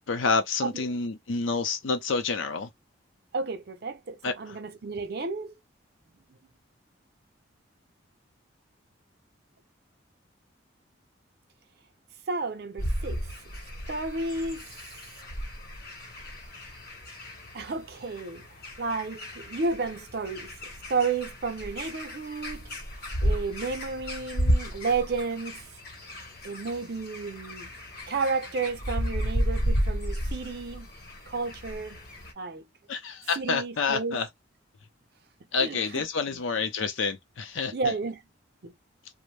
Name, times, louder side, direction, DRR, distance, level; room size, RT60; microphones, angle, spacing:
voice 1, 0.1-2.7 4.2-4.6 32.9-34.3 35.5-37.9, left 4 dB, 80° left, 0.6 m, -28 dB
voice 2, 3.3-5.5 12.3-13.3 13.9-14.7 17.5-18.5 18.8-22.7 23.2-25.7 26.4-27.7 28.1-30.9 31.3-32.0 32.4-32.7 33.4-34.2 35.6-36.0 37.7-38.2 38.6-38.7, right 4 dB, 50° right, 0.6 m, -32 dB
sound 1, 12.8-32.3, equal, 50° left, 1.0 m, -33 dB
2.5 x 2.1 x 3.2 m
head